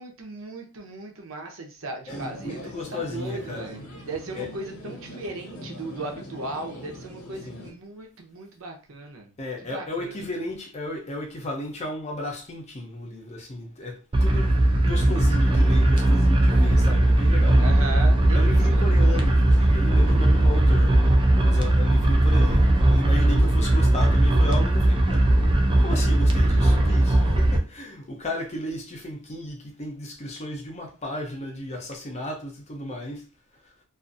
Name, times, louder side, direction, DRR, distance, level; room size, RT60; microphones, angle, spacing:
voice 1, 0.0-3.8 4.1-9.3 9.7-10.2 17.5-18.9 19.2-19.5, right 2 dB, 60° right, 0.7 m, -37 dB
sound 1, 2.1-7.7, left 1 dB, 80° left, 0.9 m, -41 dB
voice 2, 2.1-3.8 4.3-4.5 7.5-7.8 9.4-14.6 14.8-17.6 18.3-21.0 21.4-33.3 33.5-33.8, left 1 dB, 30° left, 0.6 m, -34 dB
sound 2, 14.1-27.6, right 1 dB, 20° right, 0.3 m, -19 dB
2.5 x 2.4 x 2.5 m
head